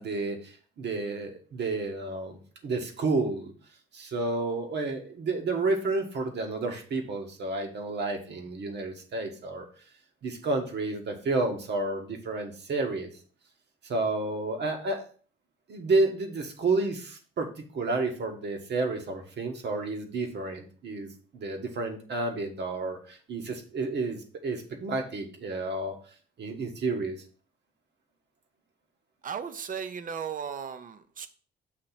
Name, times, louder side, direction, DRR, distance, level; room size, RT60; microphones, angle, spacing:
voice 1, 0.0-3.5 3.9-9.7 10.2-13.1 13.8-15.0 15.7-21.1 21.3-26.0 26.4-27.1, right 3 dB, 60° right, 4 dB, 1.4 m, -30 dB
voice 2, 29.2-31.3, right 7 dB, 45° right, 11 dB, 0.7 m, -36 dB
6.5 x 3.0 x 5.8 m, 0.42 s
cardioid pair, 90°, 20 cm